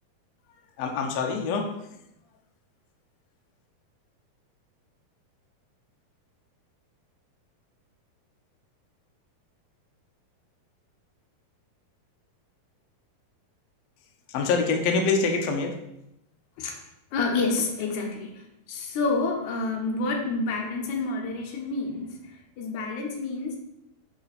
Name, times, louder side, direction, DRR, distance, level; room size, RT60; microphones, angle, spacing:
voice 1, 0.8-1.7 14.3-15.8, left 4 dB, 90° left, 3 dB, 1.4 m, -25 dB
voice 2, 17.1-23.6, left 3 dB, 65° left, 2 dB, 2.2 m, -29 dB
7.1 x 5.7 x 4.2 m, 0.84 s
omnidirectional pair, 4.2 m